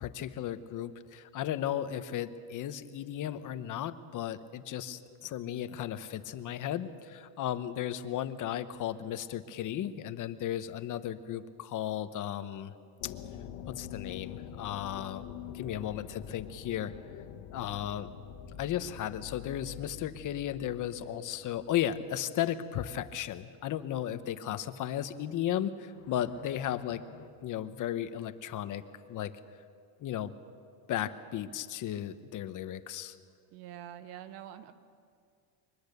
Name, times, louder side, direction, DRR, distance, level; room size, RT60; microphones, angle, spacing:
voice 1, 0.0-12.7 13.0-13.1 13.7-16.9 17.5-18.1 18.6-27.0 27.4-28.8 29.1-29.3 30.0-30.3 30.9-33.2, left 11 dB, 40° left, 11 dB, 1.0 m, -35 dB
sound 1, 13.0-23.0 23.3-23.4 25.9-27.3, left 9 dB, 70° left, 1.6 m, -46 dB
voice 2, 33.5-34.7, right 11 dB, 90° right, 11 dB, 1.5 m, -45 dB
24.0 x 20.5 x 6.8 m, 2.2 s
cardioid pair, 145°, 48 cm